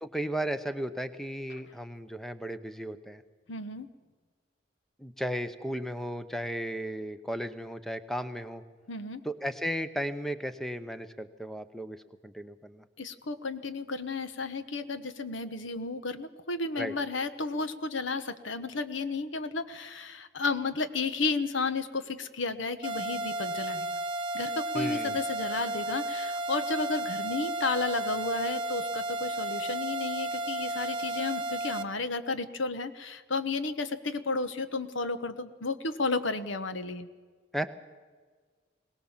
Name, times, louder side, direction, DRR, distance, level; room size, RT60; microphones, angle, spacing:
voice 1, 0.0-3.2 5.0-8.6 9.2-12.8 16.8-16.9 24.7-25.2 37.5-37.7, equal, ahead, 10 dB, 0.8 m, -35 dB
voice 2, 3.5-3.9 8.9-9.2 13.0-24.0 24.3-37.1, left 3 dB, 85° left, 11 dB, 1.2 m, -33 dB
sound 1, 22.8-31.8, right 1 dB, 25° right, 0.9 m, -33 dB
22.0 x 19.0 x 7.4 m, 1.5 s
head